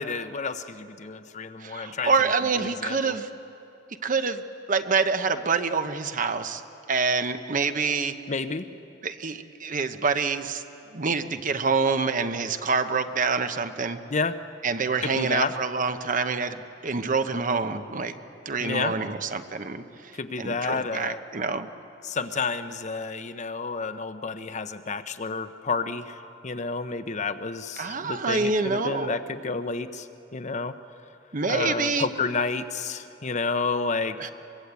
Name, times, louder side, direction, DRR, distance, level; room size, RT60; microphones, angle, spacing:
voice 1, 0.0-2.1 2.6-3.2 8.3-8.7 14.1-14.4 15.0-15.5 18.6-18.9 20.1-21.2 22.0-30.7 31.5-34.3, left 4 dB, 40° left, 10 dB, 0.8 m, -30 dB
voice 2, 1.6-3.3 4.0-4.4 4.7-6.6 6.9-8.1 9.0-10.6 10.9-14.0 14.6-18.1 18.4-20.1 20.4-21.7 27.8-29.2 31.3-32.1 34.2-34.3, right 4 dB, 45° right, 9 dB, 0.9 m, -26 dB
24.0 x 21.5 x 8.3 m, 2.9 s
head